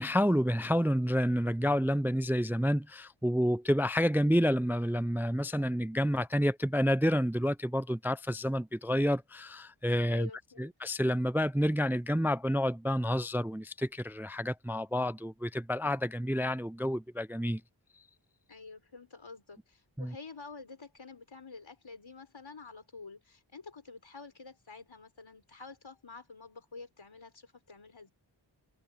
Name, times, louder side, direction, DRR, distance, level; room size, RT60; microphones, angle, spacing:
voice 1, 0.0-10.3 10.6-17.6 20.0-20.1, equal, 5° right, 0.4 m, -29 dB
voice 2, 10.1-10.7 18.5-28.1, left 4 dB, 80° left, 4.9 m, -49 dB
wide cardioid pair, 55°, 45 cm